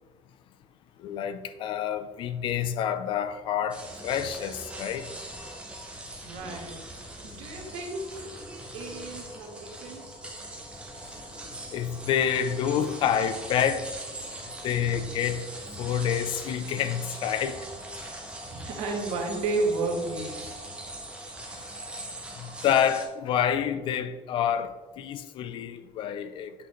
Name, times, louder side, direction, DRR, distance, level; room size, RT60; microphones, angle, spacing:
voice 1, 1.0-5.1 11.7-13.9 14.6-15.5 15.8-17.6 22.4-26.5, left 9 dB, 50° left, 0.4 m, -28 dB
sound 1, 3.7-23.0, right 1 dB, 10° right, 0.7 m, -41 dB
voice 2, 6.2-6.8 7.2-8.3 8.7-10.1 18.4-20.4, right 3 dB, 80° right, 1.3 m, -32 dB
8.3 x 4.1 x 3.1 m
cardioid pair, 165°, 11 cm